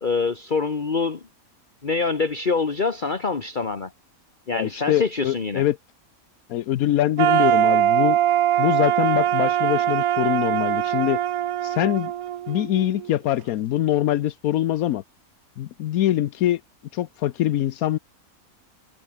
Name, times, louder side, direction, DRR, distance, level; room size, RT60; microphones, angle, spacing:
voice 1, 0.0-1.2 1.8-3.9 4.5-5.6, left 4 dB, 35° left, 1.5 m, -25 dB
voice 2, 4.5-5.8 6.5-8.2 8.6-11.2 11.6-12.1 12.5-15.0 15.6-16.6 16.9-18.0, left 13 dB, 85° left, 1.2 m, -23 dB
sound 1, 7.2-13.1, right 11 dB, 85° right, 1.3 m, -22 dB
omnidirectional pair, 1.5 m